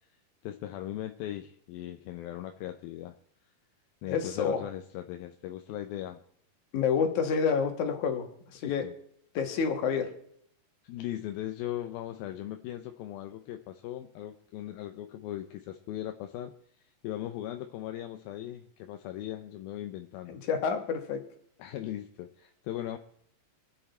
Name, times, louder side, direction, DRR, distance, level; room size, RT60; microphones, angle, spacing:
voice 1, 0.4-3.2 4.0-6.2 8.6-8.9 10.8-16.5 17.0-20.4 21.6-23.0, left 12 dB, 80° left, 6 dB, 2.6 m, -38 dB
voice 2, 4.1-4.6 6.7-8.8 9.3-10.1 20.3-21.2, left 6 dB, 55° left, 5 dB, 3.1 m, -28 dB
26.5 x 9.0 x 4.4 m, 0.69 s
omnidirectional pair, 4.4 m